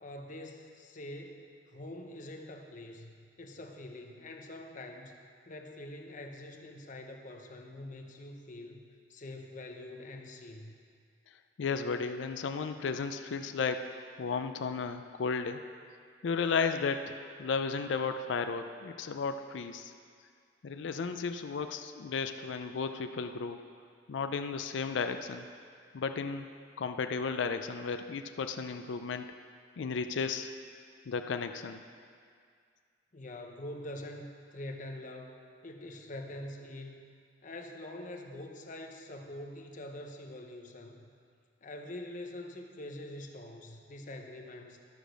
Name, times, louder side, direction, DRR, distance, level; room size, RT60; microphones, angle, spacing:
voice 1, 0.0-5.2 5.5-8.8 9.1-10.7 33.1-37.1 37.4-41.1 41.6-44.8, left 1 dB, 45° left, 3 dB, 0.8 m, -45 dB
voice 2, 11.6-13.9 14.2-15.6 16.2-19.9 20.6-23.6 24.1-25.5 25.9-26.5 26.8-29.3 29.8-30.5 31.1-31.8, left 5 dB, 85° left, 7 dB, 0.4 m, -34 dB
12.5 x 5.0 x 6.3 m, 2.1 s
head